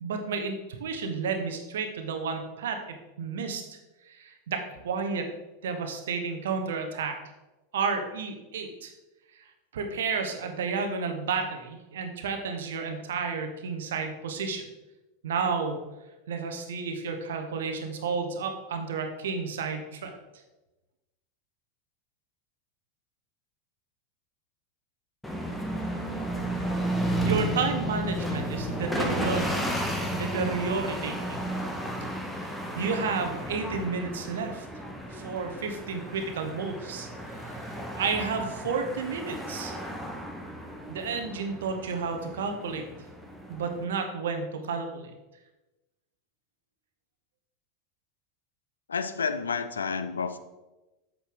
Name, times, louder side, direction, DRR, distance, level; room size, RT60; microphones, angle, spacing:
voice 1, 0.0-3.6 4.0-5.3 5.6-7.2 7.7-8.9 9.7-14.7 15.2-15.8 16.3-20.1 26.9-29.5 29.9-31.4 32.4-34.7 35.1-37.1 37.4-37.6 37.9-39.7 40.9-42.9 43.5-45.1, right 5 dB, 65° right, 6 dB, 1.1 m, -31 dB
sound 1, 25.2-43.8, right 1 dB, 5° left, 1.4 m, -33 dB
voice 2, 29.0-29.4 48.9-50.4, left 5 dB, 75° left, 11 dB, 0.5 m, -31 dB
8.2 x 6.6 x 3.8 m, 1.1 s
figure-of-eight pair, 85°, 0 cm